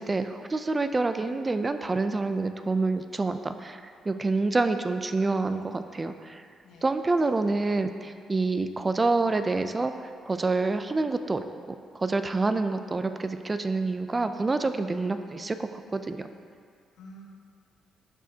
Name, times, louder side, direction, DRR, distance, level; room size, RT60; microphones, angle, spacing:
voice 1, 0.0-6.4 6.8-11.4 11.9-16.3, right 3 dB, 25° right, 9 dB, 0.4 m, -27 dB
voice 2, 6.6-7.5 14.9-15.0 16.9-17.3, equal, 85° left, -2 dB, 1.1 m, -51 dB
12.0 x 4.9 x 2.8 m, 2.2 s
cardioid pair, 90°, 0 cm